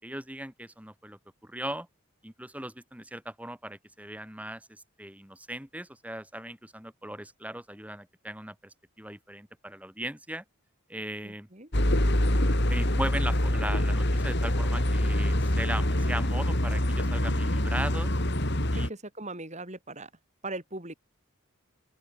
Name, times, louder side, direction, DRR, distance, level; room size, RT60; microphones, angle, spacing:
voice 1, 0.0-1.9 2.2-10.4 10.9-11.5 12.5-18.1 18.7-18.9, right 1 dB, 5° right, 5.3 m, -38 dB
voice 2, 11.2-11.9 18.9-20.1 20.4-20.9, right 2 dB, 35° right, 5.1 m, -39 dB
sound 1, 11.7-18.9, left 1 dB, 55° left, 4.0 m, -25 dB
open air
head